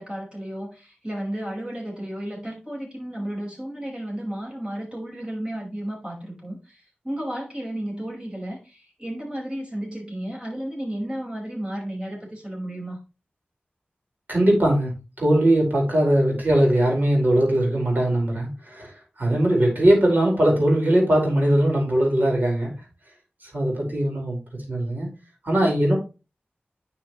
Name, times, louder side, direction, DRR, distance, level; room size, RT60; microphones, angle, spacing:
voice 1, 0.0-13.0, right 1 dB, 25° right, -2 dB, 5.3 m, -33 dB
voice 2, 14.3-14.9 15.2-18.9 19.2-22.8 23.4-24.4 24.7-25.1 25.4-25.9, right 1 dB, 50° right, -1 dB, 4.9 m, -20 dB
9.9 x 5.8 x 3.2 m, 0.30 s
wide cardioid pair, 55°, 4 cm